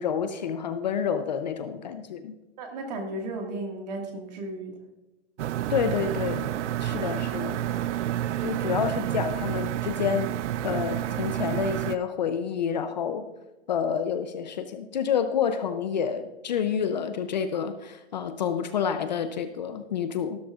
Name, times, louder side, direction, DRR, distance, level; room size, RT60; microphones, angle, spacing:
voice 1, 0.0-2.3 5.7-6.5 6.8-7.6 8.4-10.3 10.6-13.3 13.7-20.4, left 7 dB, 40° left, 9 dB, 0.6 m, -28 dB
voice 2, 2.6-4.7, right 2 dB, 35° right, 3 dB, 1.9 m, -34 dB
sound 1, 5.4-12.0, right 12 dB, 80° right, 0.5 m, -29 dB
13.0 x 13.0 x 2.5 m, 1.1 s
hypercardioid pair, 175°, 35 cm